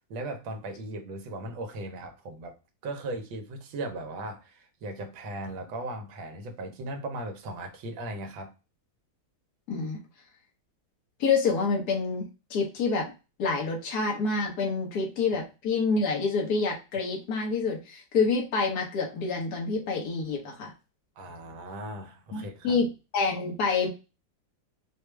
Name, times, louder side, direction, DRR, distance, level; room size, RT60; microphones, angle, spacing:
voice 1, 0.1-2.5 2.8-8.5 21.2-22.8, right 2 dB, 80° right, 1.6 m, -37 dB
voice 2, 9.7-10.0 11.2-12.3 12.5-13.1 13.4-20.7 22.3-22.9 23.1-23.9, left 4 dB, 55° left, 1.6 m, -27 dB
4.8 x 2.4 x 3.2 m
omnidirectional pair, 2.1 m